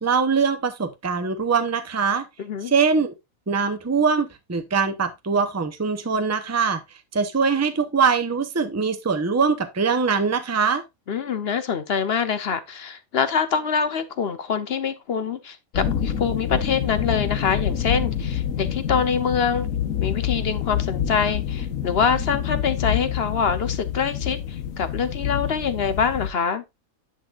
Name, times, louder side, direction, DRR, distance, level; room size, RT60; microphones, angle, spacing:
voice 1, 0.0-2.2 2.6-3.1 3.5-6.8 7.1-10.8, right 5 dB, 15° right, 0.7 m, -22 dB
voice 2, 2.4-2.7 11.1-19.7 20.0-26.6, left 6 dB, 55° left, 0.9 m, -25 dB
sound 1, 15.7-26.3, left 9 dB, 90° left, 1.5 m, -27 dB
10.5 x 5.9 x 2.4 m
omnidirectional pair, 1.4 m